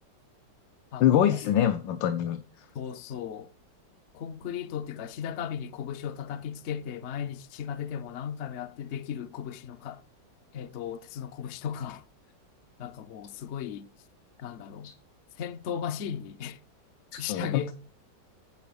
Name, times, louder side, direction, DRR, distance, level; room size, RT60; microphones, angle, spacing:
voice 1, 1.0-2.6 14.8-14.9 17.1-17.7, left 10 dB, 85° left, 1.4 m, -25 dB
voice 2, 2.7-3.5 4.1-10.0 10.5-12.0 12.8-13.9 14.4-14.9 15.4-16.6 17.2-17.7, left 8 dB, 70° left, 0.6 m, -36 dB
9.6 x 4.0 x 6.9 m
omnidirectional pair, 2.0 m